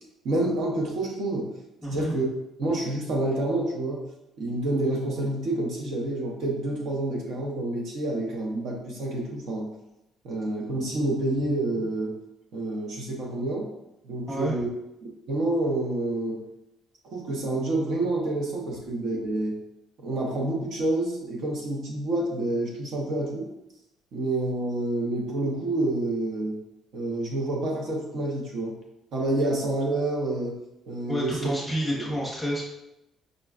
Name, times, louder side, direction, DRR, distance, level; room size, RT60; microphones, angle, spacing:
voice 1, 0.2-1.5 1.9-2.2 2.6-4.0 4.4-9.7 10.2-12.1 12.5-13.7 14.0-14.7 15.0-16.4 17.1-19.6 20.0-23.5 24.1-26.6 26.9-28.8 29.1-30.6 30.9-31.5 32.0-32.1, right 2 dB, 60° right, -1 dB, 0.6 m, -28 dB
voice 2, 1.8-2.1 14.3-14.5 31.1-32.6, equal, ahead, -5 dB, 0.8 m, -29 dB
5.0 x 2.2 x 2.3 m, 0.89 s
cardioid pair, 170°, 0 cm